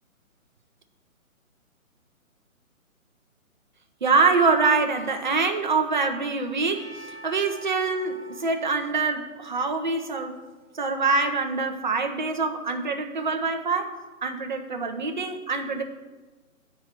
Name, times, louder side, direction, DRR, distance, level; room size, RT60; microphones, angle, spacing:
voice 1, 4.0-10.4 10.7-14.0 14.2-15.8, right 4 dB, 35° right, 5 dB, 0.7 m, -25 dB
Percussion / Church bell, 6.7-10.9, right 2 dB, 10° right, 2.1 m, -47 dB
7.9 x 4.8 x 5.9 m, 1.3 s
hypercardioid pair, 165°, 42 cm